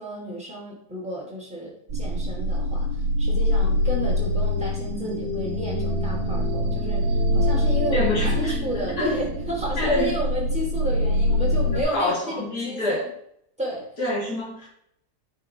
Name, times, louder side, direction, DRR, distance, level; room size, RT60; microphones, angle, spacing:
voice 1, 0.0-2.9 3.2-13.0 13.6-13.9, equal, 5° right, -4 dB, 3.3 m, -32 dB
sound 1, 1.9-11.8, left 1 dB, 65° right, 1.6 m, -24 dB
voice 2, 7.9-9.1 9.8-10.1 11.7-13.0 14.0-14.7, left 2 dB, 75° left, -5 dB, 3.7 m, -27 dB
9.0 x 6.6 x 3.3 m, 0.72 s
omnidirectional pair, 1.7 m